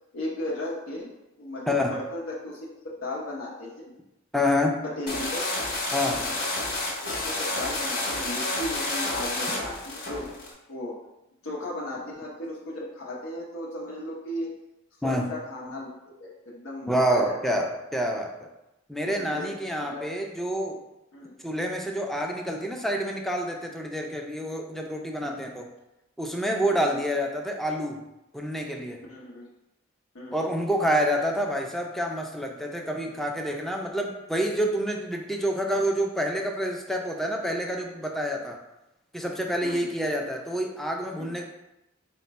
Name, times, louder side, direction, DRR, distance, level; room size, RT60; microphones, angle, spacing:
voice 1, 0.1-1.1 1.4-2.7 3.0-3.9 4.8-5.4 6.2-6.4 7.0-10.3 10.7-11.0 11.4-14.5 15.0-15.9 16.2-17.5 19.0-19.5 19.8-20.1 21.1-21.3 25.3-25.4 26.6-27.0 29.1-29.5 30.1-30.5 39.6-39.9 41.2-41.4, left 1 dB, 80° left, -4 dB, 0.7 m, -36 dB
voice 2, 4.3-4.8 5.9-6.2 15.0-15.3 16.9-18.3 18.9-20.8 21.4-25.7 26.2-28.0 28.3-29.0 30.3-38.6 39.1-41.5, equal, ahead, 2 dB, 0.4 m, -27 dB
sound 1, 5.1-10.5, left 2 dB, 50° left, 0.8 m, -30 dB
4.3 x 2.1 x 4.0 m, 0.92 s
head